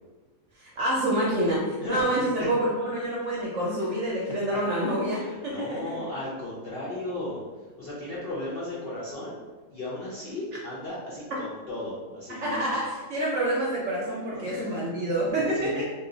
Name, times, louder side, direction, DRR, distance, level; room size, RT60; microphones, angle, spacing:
voice 1, 0.5-6.0 12.3-15.7, right 1 dB, 65° right, -4 dB, 0.8 m, -27 dB
voice 2, 5.1-9.4 9.7-12.7 14.3-14.8 15.5-15.8, left 1 dB, 70° left, -7 dB, 0.5 m, -36 dB
2.7 x 2.3 x 3.7 m, 1.3 s
omnidirectional pair, 1.7 m